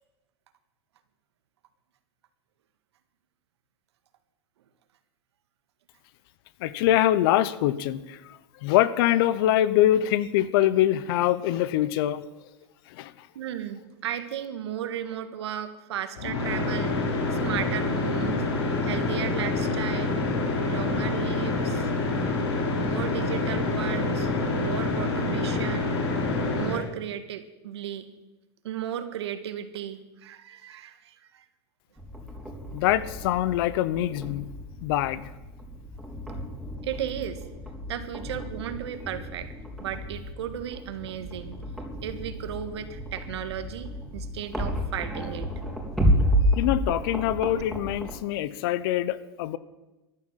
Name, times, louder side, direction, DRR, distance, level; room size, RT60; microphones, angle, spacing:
voice 1, 6.6-12.2 12.9-13.1 32.7-34.5 34.8-35.3 46.6-49.6, left 13 dB, 60° left, 17 dB, 1.0 m, -24 dB
voice 2, 13.4-18.4 18.8-20.2 20.7-21.9 22.8-26.0 26.5-28.1 28.6-31.4 36.8-37.4 37.9-39.5 39.8-41.6 42.0-45.5, right 10 dB, 80° right, 10 dB, 1.8 m, -35 dB
sound 1, 16.2-26.8, left 2 dB, 75° left, 4.7 m, -27 dB
sound 2, 32.0-48.2, equal, ahead, 3.7 m, -31 dB
14.5 x 11.0 x 7.6 m, 1.0 s
hypercardioid pair, 125°, 14 cm